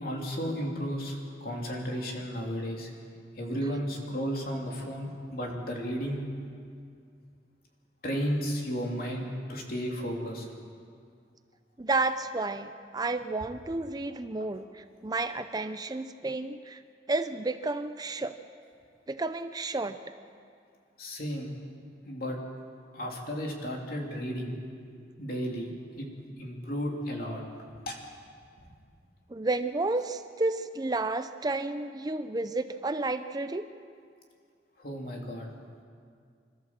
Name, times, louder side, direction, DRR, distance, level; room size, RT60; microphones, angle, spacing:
voice 1, 0.0-2.9 3.4-6.2 8.0-10.5 21.0-21.5 22.0-22.4 22.9-24.9 25.2-25.7 26.0-26.1 26.4-27.4 27.9-28.0 34.8-35.5, equal, 55° left, 0 dB, 3.2 m, -33 dB
voice 2, 11.8-16.8 17.1-18.4 19.1-20.0 29.3-33.6, right 2 dB, 20° right, 10 dB, 0.5 m, -31 dB
26.0 x 14.0 x 7.5 m, 2.2 s
head